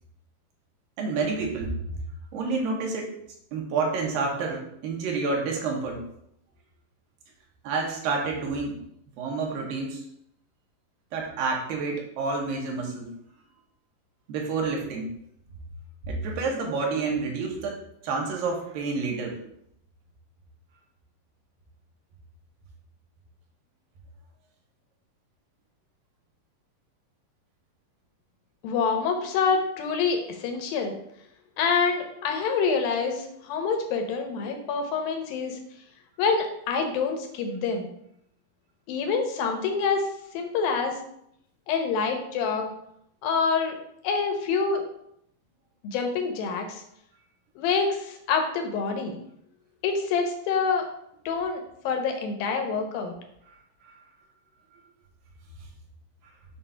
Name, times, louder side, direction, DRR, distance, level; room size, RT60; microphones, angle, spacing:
voice 1, 1.0-1.8 2.3-3.1 3.5-6.0 7.6-8.8 9.2-10.0 11.1-13.2 14.3-15.2 16.0-19.4 53.8-53.9, right 4 dB, 80° right, 0 dB, 2.9 m, -29 dB
voice 2, 28.6-31.0 31.6-35.6 36.2-37.9 38.9-40.1 40.3-41.0 41.7-42.7 43.2-43.8 44.0-44.8 45.8-46.8 47.6-49.2 49.8-50.9 51.3-53.1, left 5 dB, 80° left, 4 dB, 2.7 m, -26 dB
7.4 x 2.5 x 5.5 m, 0.73 s
omnidirectional pair, 4.0 m